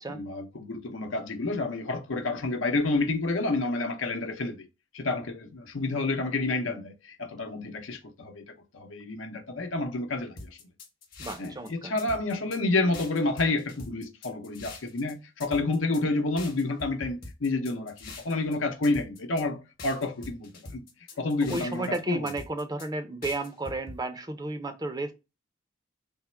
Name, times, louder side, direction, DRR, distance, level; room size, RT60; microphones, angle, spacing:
voice 1, 0.1-4.7 4.9-10.6 11.4-20.8 21.2-22.3, left 2 dB, 80° left, 0.8 m, -29 dB
sound 1, 10.4-11.7 12.0-12.6 12.9-15.1 15.4-16.0 16.4-18.5 18.8-19.4 19.8-22.0 22.3-22.9 23.2-24.0, left 3 dB, 45° left, 1.0 m, -43 dB
voice 2, 11.2-11.9 21.5-25.1, right 2 dB, 20° right, 0.5 m, -33 dB
3.5 x 2.0 x 4.3 m
head